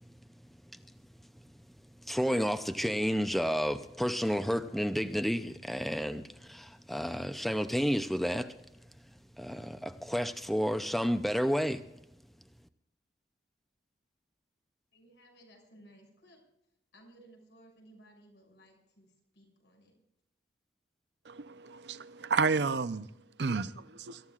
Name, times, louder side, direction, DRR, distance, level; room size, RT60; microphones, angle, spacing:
voice 1, 2.0-8.6 9.4-11.8, equal, ahead, 0.5 m, -31 dB
voice 2, 14.9-16.4 16.9-20.0, right 1 dB, 85° left, 6.4 m, -59 dB
voice 3, 21.3-23.1 23.4-24.2, right 4 dB, 75° right, 0.7 m, -31 dB
25.5 x 14.0 x 2.4 m
head